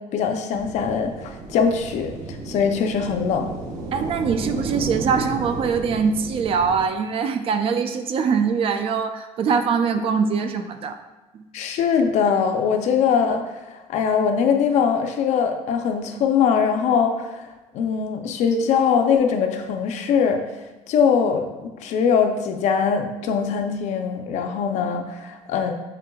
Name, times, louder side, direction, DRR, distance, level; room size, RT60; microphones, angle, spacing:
voice 1, 0.1-3.5 11.5-17.5 17.7-20.4 20.9-21.5 21.8-25.7, left 6 dB, 65° left, 5 dB, 0.5 m, -22 dB
sound 1, 0.5-6.8, right 2 dB, 80° right, 0.8 m, -33 dB
voice 2, 3.9-11.0 11.3-11.4, right 6 dB, 50° right, 8 dB, 0.4 m, -23 dB
5.8 x 3.7 x 2.3 m, 1.1 s
cardioid pair, 140°, 13 cm